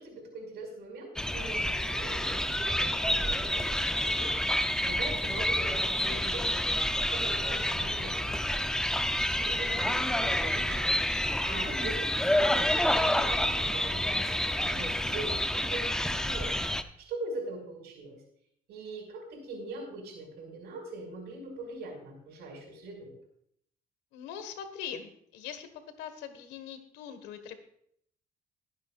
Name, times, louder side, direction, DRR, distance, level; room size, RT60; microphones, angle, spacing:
voice 1, 0.0-6.8 7.1-8.3 9.4-18.2 18.7-23.1, right 2 dB, 80° right, 2 dB, 5.4 m, -42 dB
sound 1, 1.2-16.8, left 1 dB, 5° left, 0.6 m, -29 dB
voice 2, 24.1-25.7 26.0-27.6, left 8 dB, 90° left, 9 dB, 1.6 m, -42 dB
21.5 x 9.4 x 2.5 m, 0.68 s
cardioid pair, 110°, 17 cm